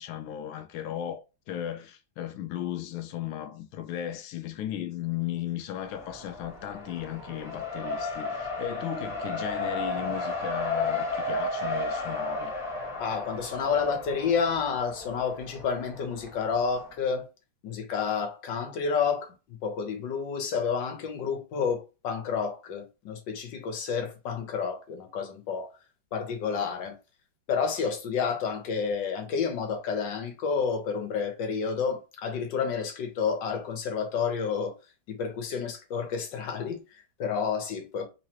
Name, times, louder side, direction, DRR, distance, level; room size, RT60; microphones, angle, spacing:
voice 1, 0.0-12.6, left 11 dB, 85° left, 1.4 m, -36 dB
Race car auto racing, 5.8-16.8, left 2 dB, ahead, 0.8 m, -34 dB
voice 2, 13.0-17.3 17.6-25.7 26.1-27.0 27.5-34.7 35.1-38.1, left 6 dB, 70° left, 1.6 m, -30 dB
3.7 x 3.0 x 2.8 m
omnidirectional pair, 2.2 m